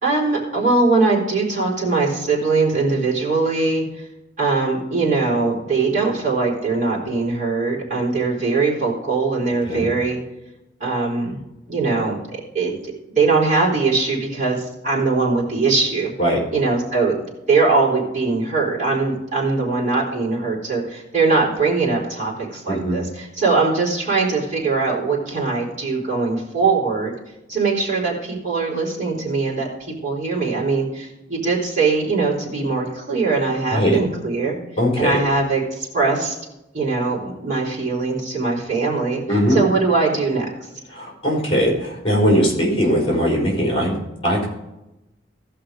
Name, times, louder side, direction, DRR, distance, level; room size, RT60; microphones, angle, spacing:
voice 1, 0.0-4.1 4.4-10.2 10.8-11.4 11.7-16.1 16.5-17.1 17.5-27.1 27.5-34.6 35.0-36.4 36.7-39.2 39.5-40.7, right 3 dB, 40° right, -4 dB, 4.0 m, -21 dB
voice 2, 34.8-35.2 39.3-39.6 40.9-44.0 44.2-44.5, equal, 30° left, -2 dB, 4.3 m, -19 dB
17.0 x 5.7 x 5.0 m, 0.94 s
head